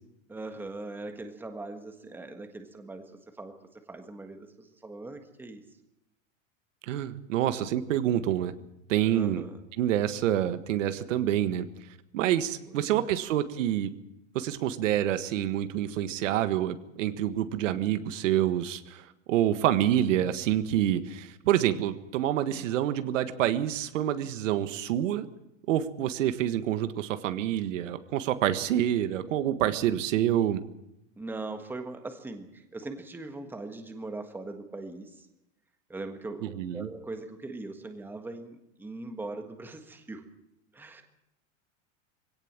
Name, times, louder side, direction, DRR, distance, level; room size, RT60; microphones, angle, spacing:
voice 1, 0.3-3.5 3.9-5.6 9.1-9.6 12.7-13.1 22.5-22.7 31.2-35.3 35.9-40.2 40.7-41.0, right 2 dB, 5° right, 5 dB, 1.5 m, -41 dB
voice 2, 6.9-8.5 8.9-9.4 9.8-11.7 12.1-13.9 14.3-19.0 19.3-25.3 25.7-30.6 36.4-36.9, right 11 dB, 75° right, 10 dB, 1.6 m, -27 dB
21.0 x 17.5 x 7.4 m, 0.88 s
supercardioid pair, 160°, 38 cm